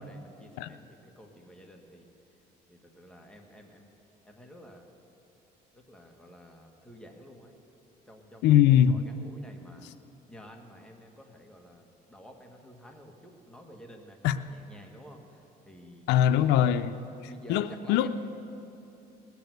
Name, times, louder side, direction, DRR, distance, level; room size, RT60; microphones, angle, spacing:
voice 1, 0.0-2.1 2.7-3.9 4.2-4.9 5.7-7.5 8.0-9.9 10.3-16.1 16.9-17.0 17.2-18.1, equal, 5° left, 1.7 m, -51 dB
voice 2, 8.4-9.0 14.2-14.3 16.1-17.0 17.5-18.1, left 10 dB, 90° left, 0.5 m, -21 dB
19.0 x 7.0 x 8.0 m
cardioid pair, 110°, 17 cm